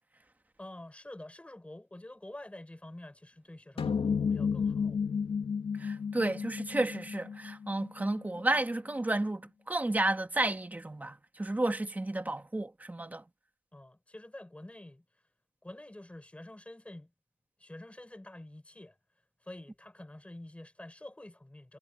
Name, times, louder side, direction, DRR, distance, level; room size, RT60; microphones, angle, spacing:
voice 1, 0.6-5.0 13.7-15.0 15.6-17.1 17.6-19.0 19.4-21.8, left 1 dB, 5° left, 6.4 m, -48 dB
sound 1, 3.8-8.4, left 6 dB, 35° left, 2.3 m, -32 dB
voice 2, 5.8-9.4 9.7-13.2, right 2 dB, 10° right, 2.1 m, -32 dB
cardioid pair, 110°, 17 cm